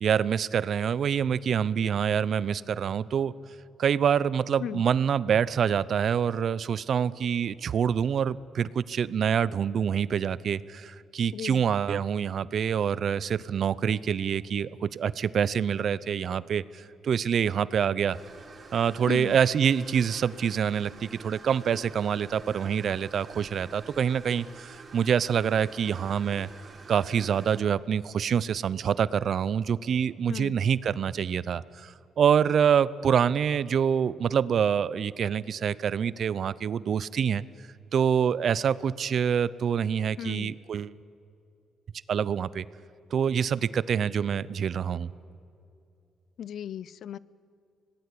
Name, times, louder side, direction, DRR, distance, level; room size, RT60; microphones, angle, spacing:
voice 1, 0.0-3.3 3.8-18.2 18.7-26.5 26.9-37.4 37.9-40.9 42.1-42.6 43.1-45.1, right 8 dB, 60° right, 19 dB, 0.7 m, -26 dB
sound 1, 18.1-27.6, right 4 dB, 40° right, 4.3 m, -48 dB
voice 2, 40.2-40.5 46.4-47.2, left 9 dB, 65° left, 21 dB, 0.6 m, -35 dB
26.0 x 19.0 x 8.5 m, 2.6 s
cardioid pair, 90°, 0 cm